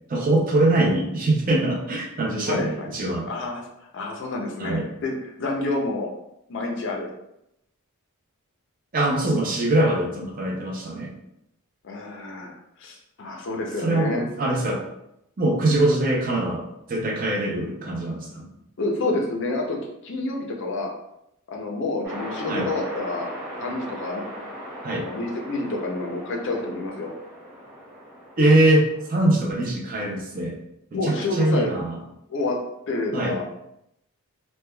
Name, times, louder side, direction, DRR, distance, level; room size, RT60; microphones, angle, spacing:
voice 1, 0.1-3.3 4.6-4.9 8.9-11.1 13.8-14.8 15.4-18.4 22.5-22.7 24.8-25.1 28.4-30.6 30.9-32.0 33.1-33.4, right 1 dB, 40° right, -1 dB, 0.5 m, -23 dB
voice 2, 2.5-2.9 3.3-6.1 6.5-7.1 11.8-12.5 12.8-14.2 18.8-19.8 20.0-20.9 21.5-23.3 23.6-24.2 24.9-27.1 30.9-31.7 32.3-32.6 32.9-33.5, left 2 dB, 55° left, 0 dB, 0.5 m, -28 dB
sound 1, 22.0-29.4, equal, 15° right, 0.9 m, -38 dB
3.1 x 2.2 x 2.2 m, 0.81 s
head